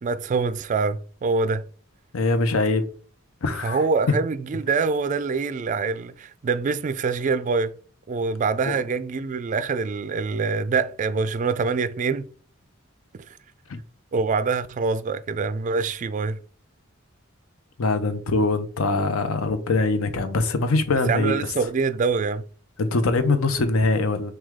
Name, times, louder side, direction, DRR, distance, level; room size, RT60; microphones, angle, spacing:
voice 1, 0.0-1.7 3.6-7.8 8.1-12.3 13.1-13.2 14.1-16.4 21.1-22.4, right 4 dB, 35° right, 0.3 m, -25 dB
voice 2, 2.1-2.9 3.4-3.8 8.7-8.8 13.7-13.8 17.8-21.5 22.8-24.3, left 3 dB, 80° left, 0.6 m, -23 dB
6.1 x 2.3 x 3.6 m
head